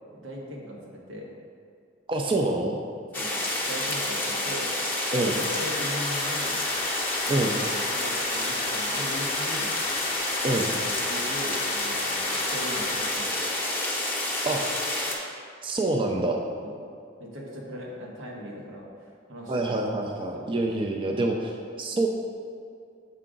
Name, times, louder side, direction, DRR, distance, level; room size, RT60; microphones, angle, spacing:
voice 1, 0.1-1.3 3.1-3.4 3.7-4.7 5.2-6.6 7.2-7.6 7.9-9.7 10.9-13.3 16.6-16.7 17.2-20.5, equal, 90° right, -2 dB, 1.3 m, -39 dB
voice 2, 2.1-2.8 5.1-5.4 7.3-7.6 10.4-10.7 14.4-14.6 15.6-16.4 19.5-22.1, right 2 dB, 25° right, 1 dB, 0.4 m, -26 dB
sound 1, 3.1-15.1, left 1 dB, 10° left, 0.8 m, -29 dB
sound 2, 5.3-13.1, left 4 dB, 35° left, 0.5 m, -36 dB
6.7 x 4.9 x 3.7 m, 2.3 s
head